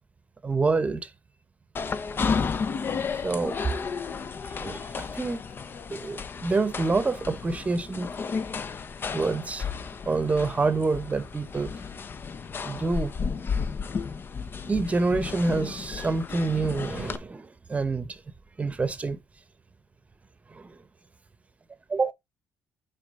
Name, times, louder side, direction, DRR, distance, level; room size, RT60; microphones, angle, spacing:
voice 1, 0.4-1.1 2.1-2.4 3.2-3.6 4.5-5.4 5.9-8.1 9.1-9.7 10.1-11.7 12.6-13.1 14.6-18.2 18.6-19.2 20.5-20.8 21.9-22.1, right 3 dB, 25° right, 0.9 m, -27 dB
sound 1, 1.8-17.2, left 5 dB, 40° left, 0.7 m, -33 dB
6.2 x 4.9 x 3.7 m
cardioid pair, 95°, 6 cm